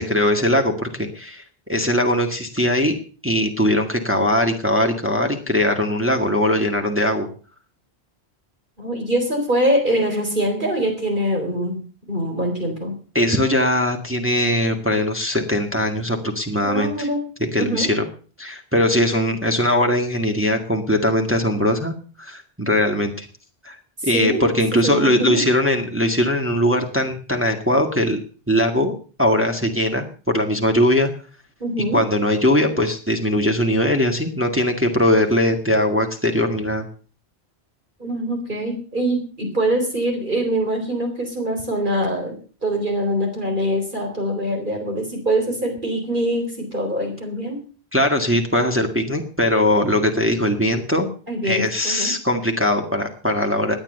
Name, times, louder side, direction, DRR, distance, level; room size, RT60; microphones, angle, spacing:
voice 1, 0.0-3.0 3.2-7.3 13.1-17.1 17.5-18.1 18.4-23.3 23.6-23.8 24.0-28.2 28.5-28.9 29.2-31.1 31.9-36.9 47.9-51.1 51.4-53.8, left 1 dB, 10° right, 3 dB, 1.9 m, -20 dB
voice 2, 8.8-11.8 12.1-12.9 16.6-17.2 17.6-17.9 24.0-24.5 24.8-25.4 31.6-32.0 38.0-47.6 51.3-52.1, right 1 dB, 50° right, 3 dB, 4.2 m, -23 dB
18.0 x 9.9 x 6.6 m, 0.40 s
omnidirectional pair, 1.1 m